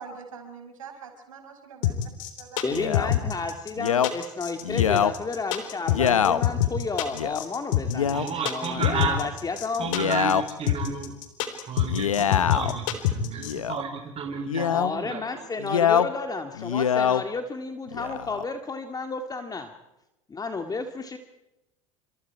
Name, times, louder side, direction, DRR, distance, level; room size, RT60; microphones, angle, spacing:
voice 1, 0.0-2.1 2.4-3.3, right 5 dB, 85° right, 4 dB, 5.7 m, -44 dB
sound 1, 1.8-13.5, left 14 dB, 70° left, 3.7 m, -25 dB
voice 2, 2.6-9.9 14.7-19.7 20.3-21.2, left 4 dB, 20° left, 6 dB, 2.0 m, -32 dB
Male speech man speaking, 2.7-3.1 3.8-4.1 4.6-5.1 5.9-6.4 7.1-7.4 7.9-8.3 8.7-9.3 9.8-10.4 11.8-12.7 13.4-13.8 14.5-14.9 15.6-16.1 16.5-17.2 17.9-18.4, left 8 dB, 90° left, 1.0 m, -24 dB
voice 3, 8.1-9.2 9.8-11.1 11.7-15.5, right 6 dB, 35° right, 3 dB, 4.1 m, -32 dB
29.0 x 27.0 x 4.7 m, 0.94 s
hypercardioid pair, 75°, 17 cm